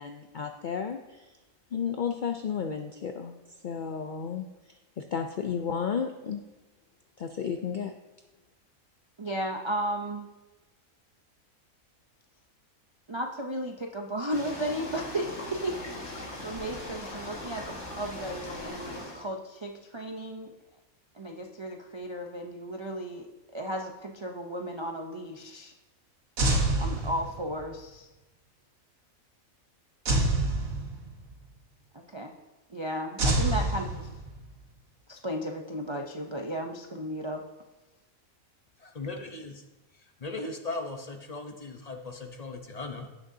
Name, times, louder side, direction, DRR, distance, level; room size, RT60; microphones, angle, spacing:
voice 1, 0.0-1.3 1.7-3.4 3.6-4.5 5.0-6.4 7.2-7.9, left 7 dB, 70° left, 5 dB, 0.4 m, -32 dB
voice 2, 9.2-10.3 13.1-15.8 16.1-20.5 21.1-23.3 23.5-25.7 26.8-28.1 31.9-32.3 32.7-34.1 35.1-37.4, right 1 dB, 40° right, 1 dB, 0.4 m, -34 dB
sound 1, 14.3-19.2, left 1 dB, 55° left, 2.0 m, -40 dB
sound 2, 26.4-27.6 30.1-31.3 33.2-34.5, right 2 dB, 75° right, 1.8 m, -27 dB
voice 3, 38.8-39.5 40.2-43.1, left 2 dB, 35° left, 4 dB, 0.8 m, -38 dB
17.0 x 6.4 x 2.7 m, 1.1 s
omnidirectional pair, 1.5 m